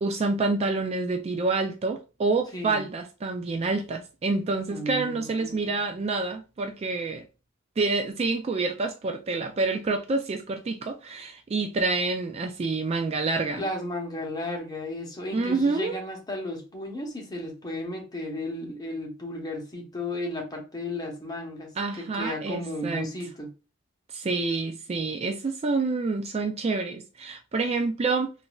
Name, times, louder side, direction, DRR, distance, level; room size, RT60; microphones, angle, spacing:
voice 1, 0.0-7.3 7.8-13.6 15.3-16.0 21.8-23.1 24.1-28.3, right 3 dB, 30° right, 0.3 m, -27 dB
voice 2, 4.7-5.8 13.5-23.5, left 1 dB, 20° left, 0.9 m, -34 dB
3.7 x 2.5 x 2.3 m
head